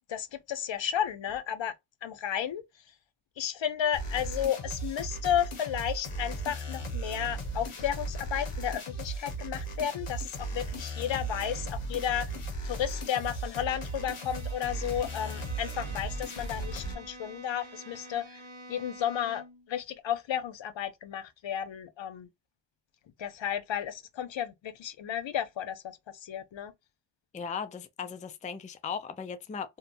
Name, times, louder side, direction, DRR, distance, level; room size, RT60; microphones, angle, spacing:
voice 1, 0.1-1.7 2.0-2.6 3.4-12.3 12.6-22.3 23.2-26.7, left 10 dB, 65° left, 0.6 m, -33 dB
sound 1, 3.9-16.9, right 1 dB, 90° left, 0.9 m, -36 dB
Bowed string instrument, 13.2-19.7, right 1 dB, 70° right, 0.9 m, -49 dB
voice 2, 27.3-29.8, left 6 dB, 20° left, 0.3 m, -37 dB
2.7 x 2.2 x 2.4 m
wide cardioid pair, 65°, 49 cm